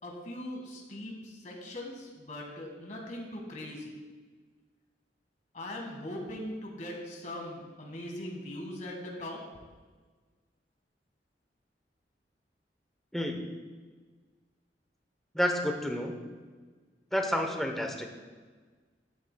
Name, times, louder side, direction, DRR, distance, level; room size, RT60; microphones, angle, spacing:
voice 1, 0.0-3.9 5.5-9.4, left 1 dB, 45° left, 0 dB, 1.7 m, -40 dB
voice 2, 13.1-13.4 15.3-16.1 17.1-18.1, equal, ahead, 2 dB, 0.8 m, -30 dB
12.0 x 9.6 x 2.3 m, 1.4 s
head